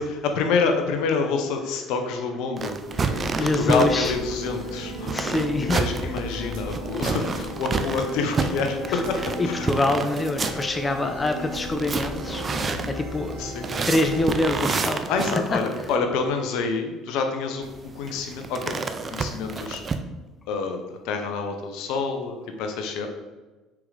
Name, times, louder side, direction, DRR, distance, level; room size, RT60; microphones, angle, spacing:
voice 1, 0.0-2.7 3.4-5.1 5.6-9.7 10.4-10.6 12.7-12.9 13.4-13.7 15.1-18.8 19.1-19.8 20.5-23.1, left 4 dB, 65° left, 5 dB, 0.9 m, -27 dB
sound 1, 2.6-16.0 17.6-20.0, right 4 dB, 35° right, 0.5 m, -30 dB
sound 2, 2.9-14.6, left 1 dB, 75° right, 2.0 m, -36 dB
voice 2, 3.0-4.1 5.1-5.8 8.9-9.0 9.4-12.4 12.9-13.4 13.9-15.0 15.5-15.6, left 2 dB, 25° left, 6 dB, 0.7 m, -25 dB
6.0 x 4.8 x 3.9 m, 1.2 s
hypercardioid pair, 60°, 0 cm